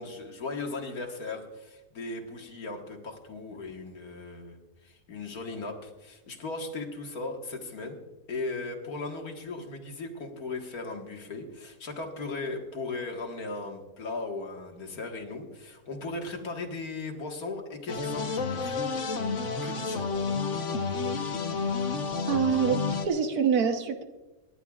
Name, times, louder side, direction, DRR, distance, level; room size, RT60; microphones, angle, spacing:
voice 1, 0.0-4.6 4.8-8.0 8.3-19.2 19.6-20.1, left 3 dB, 75° left, 2 dB, 2.2 m, -37 dB
sound 1, 17.9-23.1, left 4 dB, 55° left, 1.4 m, -30 dB
voice 2, 22.2-24.0, right 7 dB, 80° right, 6 dB, 1.6 m, -26 dB
27.5 x 11.0 x 2.4 m, 1.1 s
omnidirectional pair, 1.6 m